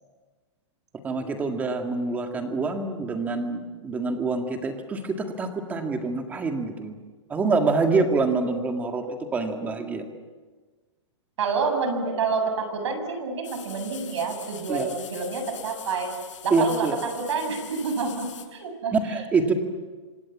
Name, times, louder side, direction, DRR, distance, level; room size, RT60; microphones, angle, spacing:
voice 1, 1.0-7.0 7.3-10.1 14.7-14.9 16.5-17.0 18.9-19.5, right 3 dB, 10° right, 4 dB, 1.9 m, -26 dB
voice 2, 11.4-16.1 16.4-18.9, right 4 dB, 70° right, 6 dB, 7.8 m, -28 dB
sound 1, 13.4-18.5, left 8 dB, 90° left, 6.3 m, -43 dB
29.5 x 26.5 x 7.3 m, 1.4 s
hypercardioid pair, 170°, 16 cm